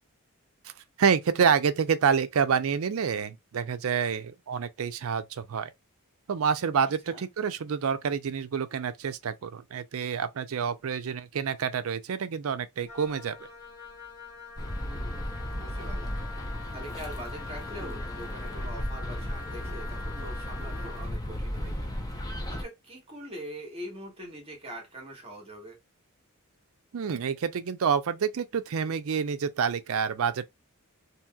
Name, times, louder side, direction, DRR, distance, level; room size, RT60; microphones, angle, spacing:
voice 1, 1.0-5.7 6.3-13.4 26.9-30.4, right 6 dB, 65° right, 0.4 m, -28 dB
Wind instrument woodwind instrument, 12.9-21.1, left 4 dB, 30° left, 1.7 m, -44 dB
sound 1, 14.6-22.6, equal, 15° left, 0.6 m, -35 dB
voice 2, 14.8-16.1 16.7-21.9 22.5-25.8, equal, 25° right, 1.2 m, -43 dB
2.8 x 2.8 x 2.3 m
head